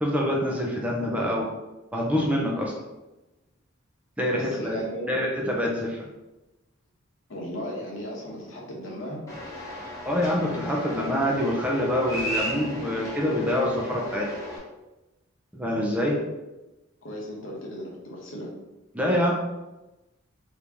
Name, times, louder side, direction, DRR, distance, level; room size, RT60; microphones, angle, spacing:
voice 1, 0.0-1.5 1.9-2.7 4.2-4.8 5.1-6.1 10.1-14.3 15.5-16.2 18.9-19.3, left 1 dB, 5° right, -2 dB, 0.5 m, -25 dB
voice 2, 4.3-5.4 7.3-9.2 17.0-18.5, equal, 70° left, -2 dB, 1.0 m, -36 dB
sound 1, 9.3-14.6, equal, 15° left, 1.0 m, -35 dB
3.1 x 2.6 x 3.4 m, 1.0 s
head